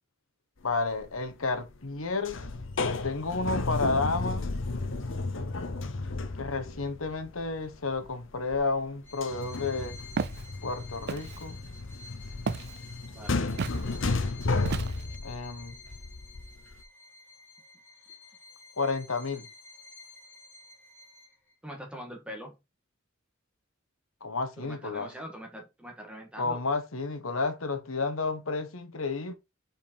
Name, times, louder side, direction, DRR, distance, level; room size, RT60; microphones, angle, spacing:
voice 1, 0.6-2.5 3.0-4.5 6.4-10.0 10.6-11.6 15.2-15.8 18.8-19.5 24.2-25.1 26.4-29.3, left 3 dB, 80° left, 1.2 m, -31 dB
sound 1, 0.8-1.2 1.5-2.0 2.2-8.8 9.1-16.8, left 3 dB, 65° left, 0.9 m, -33 dB
Bowed string instrument, 9.0-21.5, left 3 dB, 10° left, 2.0 m, -51 dB
Walk footsteps, 10.2-10.4 11.1-11.4 12.5-12.8 13.6-13.8 14.6-15.2, right 5 dB, 50° right, 0.4 m, -32 dB
voice 2, 13.1-13.5 21.6-22.6 24.6-26.6, equal, 5° right, 1.7 m, -42 dB
5.3 x 5.2 x 4.5 m
head